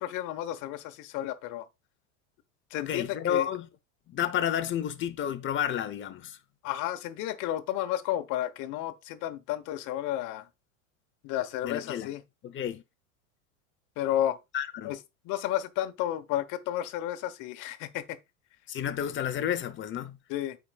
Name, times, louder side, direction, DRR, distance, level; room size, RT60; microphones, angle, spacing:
voice 1, 0.0-1.7 2.7-3.5 6.6-10.5 11.2-12.2 14.0-14.4 14.8-15.0 15.2-18.2 20.3-20.6, left 12 dB, 50° left, 1.1 m, -32 dB
voice 2, 2.9-3.7 4.1-6.4 11.6-12.1 12.4-12.8 14.5-14.9 18.7-20.2, left 10 dB, 30° left, 0.8 m, -31 dB
13.5 x 4.9 x 2.4 m
supercardioid pair, 115°, 39 cm